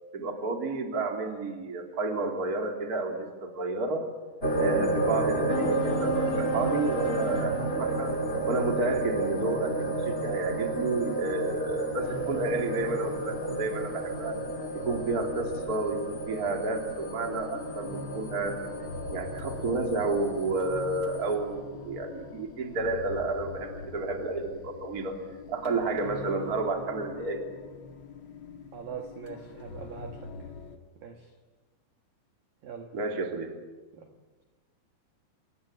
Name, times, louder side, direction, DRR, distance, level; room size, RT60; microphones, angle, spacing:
voice 1, 0.1-4.0 4.6-8.1 8.5-14.4 14.7-18.6 19.1-25.2 25.5-27.4 32.9-33.6, right 3 dB, 25° right, 3 dB, 2.6 m, -31 dB
sound 1, 4.4-21.3, right 2 dB, 20° left, 1.8 m, -31 dB
sound 2, 5.5-10.3, left 2 dB, 50° left, 4.1 m, -38 dB
sound 3, 12.0-30.8, left 4 dB, 80° left, 1.1 m, -43 dB
voice 2, 28.7-30.3 31.0-31.3 32.6-32.9 33.9-34.1, right 6 dB, 60° right, 5 dB, 2.5 m, -42 dB
28.0 x 22.5 x 8.5 m, 1.3 s
omnidirectional pair, 5.9 m